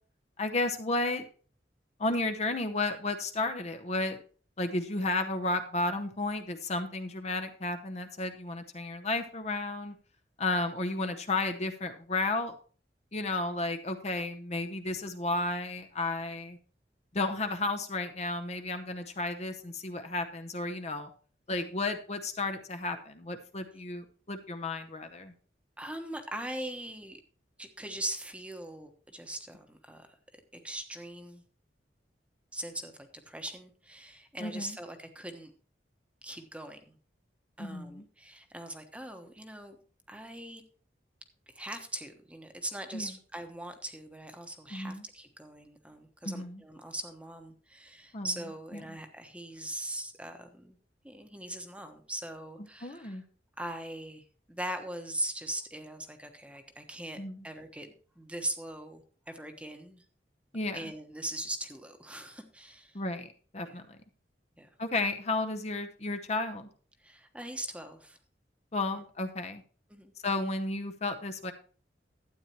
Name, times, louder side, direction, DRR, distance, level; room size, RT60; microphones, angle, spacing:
voice 1, 0.4-1.2 2.0-4.2 4.6-9.9 10.4-12.6 13.1-16.6 17.1-21.1 21.5-25.3 34.4-34.8 37.6-38.0 42.9-43.1 44.7-45.0 46.2-46.6 48.1-48.3 48.9-49.0 52.8-53.2 57.2-57.4 60.5-60.8 62.9-64.0 64.8-66.7 68.7-69.6 70.2-71.5, left 2 dB, 40° left, 7 dB, 0.8 m, -33 dB
voice 2, 25.8-27.2 27.6-30.2 30.5-31.4 32.5-35.5 36.2-37.0 37.6-39.8 40.1-40.6 41.5-50.8 51.0-53.2 53.6-57.2 57.4-60.0 60.7-63.0 63.6-63.8 64.6-64.7 67.0-68.2 69.9-70.1, right 1 dB, 5° right, 6 dB, 1.1 m, -41 dB
12.5 x 9.0 x 3.0 m, 0.41 s
head